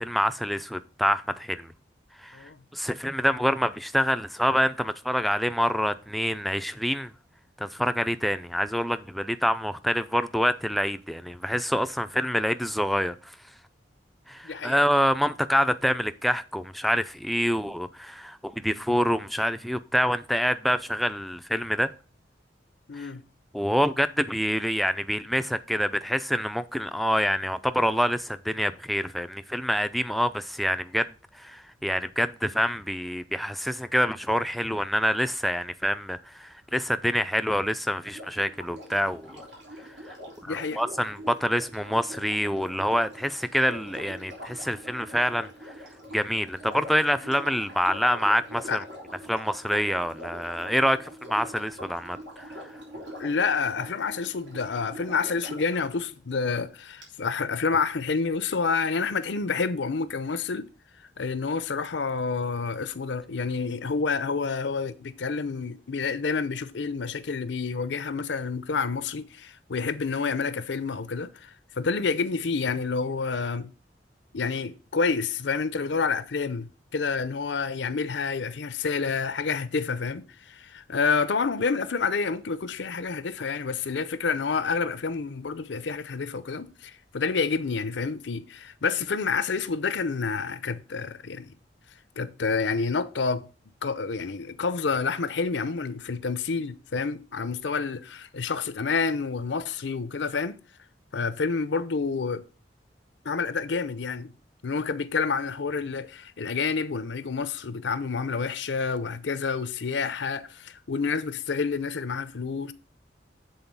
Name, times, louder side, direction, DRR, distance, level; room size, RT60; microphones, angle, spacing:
voice 1, 0.0-1.7 2.2-7.1 7.6-13.4 14.3-21.9 23.0-23.1 23.5-31.1 31.3-39.4 40.1-40.2 40.4-45.7 46.1-48.8 49.2-52.7, equal, ahead, 0.4 m, -26 dB
voice 2, 14.4-14.8 22.9-23.2 40.5-40.8 48.7-48.8 53.2-60.7 61.2-73.7 74.3-91.5 92.2-93.5 93.8-100.6 101.1-102.4 103.2-104.3 104.6-112.7, left 5 dB, 80° left, 0.6 m, -28 dB
Sink (filling or washing), 38.0-55.8 57.0-57.1, equal, 85° right, 3.1 m, -43 dB
8.0 x 4.0 x 5.4 m
head